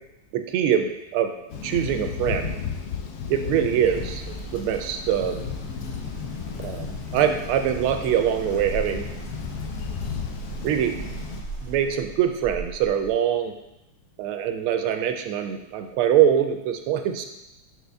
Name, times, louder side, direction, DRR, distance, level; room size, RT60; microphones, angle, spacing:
voice 1, 0.3-1.3 1.6-2.5 3.3-5.5 6.6-6.9 7.1-9.1 10.6-10.9 11.6-13.5 14.2-17.3, right 9 dB, 85° right, 7 dB, 1.5 m, -23 dB
Thunder, 1.5-11.4, left 7 dB, 85° left, 0.8 m, -34 dB
sound 1, 3.8-13.1, right 3 dB, 35° left, 2.4 m, -38 dB
6.7 x 4.7 x 3.4 m, 0.90 s
omnidirectional pair, 2.4 m